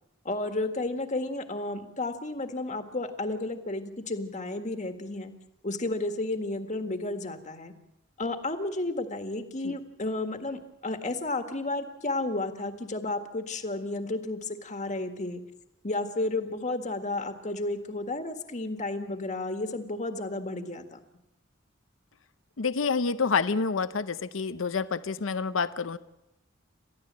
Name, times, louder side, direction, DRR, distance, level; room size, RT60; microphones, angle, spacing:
voice 1, 0.3-5.3 5.6-7.7 8.2-15.4 15.8-21.0, left 2 dB, 40° left, 6 dB, 1.8 m, -32 dB
voice 2, 22.6-26.0, left 5 dB, 90° left, 13 dB, 0.7 m, -28 dB
29.5 x 13.5 x 7.6 m, 0.89 s
head